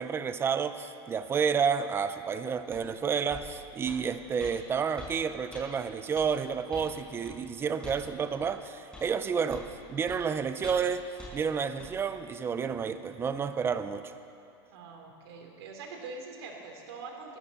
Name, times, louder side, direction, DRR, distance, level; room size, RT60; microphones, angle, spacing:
voice 1, 0.0-11.1 11.3-14.1, right 6 dB, 20° right, 11 dB, 0.6 m, -30 dB
sound 1, 2.7-2.8 3.3-3.5 3.9-4.0 4.4-4.5 5.0-5.1 5.5-5.6 6.2-6.3 6.7-6.9 7.2-7.4 7.8-8.0 8.4-8.5 8.9-9.1 9.5-9.7 10.1-10.2 10.6-10.9 11.2-11.3 11.8-11.9, left 2 dB, 5° left, 4.9 m, -45 dB
voice 2, 14.7-17.4, right 4 dB, 75° right, 1 dB, 3.0 m, -43 dB
23.0 x 13.5 x 4.1 m, 2.7 s
supercardioid pair, 140°, 13 cm